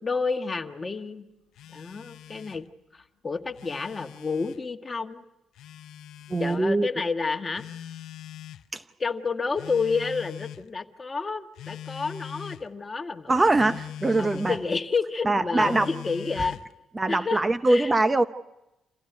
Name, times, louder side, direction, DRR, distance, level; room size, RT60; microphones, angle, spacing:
voice 1, 0.0-1.3 1.7-2.7 2.9-5.2 6.4-7.6 9.0-13.5 14.2-16.6 17.1-17.4 17.7-17.9, left 4 dB, 30° left, 1.6 m, -30 dB
Telephone, 1.5-2.6 3.4-4.6 5.5-6.6 7.6-8.7 9.6-10.7 11.5-12.6 13.6-14.7 15.6-16.7, left 10 dB, 80° left, 0.8 m, -42 dB
voice 2, 6.3-6.9 8.7-8.8 13.3-14.6 15.2-15.9 16.4-16.5 16.9-18.2, right 2 dB, 20° right, 0.8 m, -23 dB
27.5 x 16.0 x 9.4 m
cardioid pair, 90°, 0 cm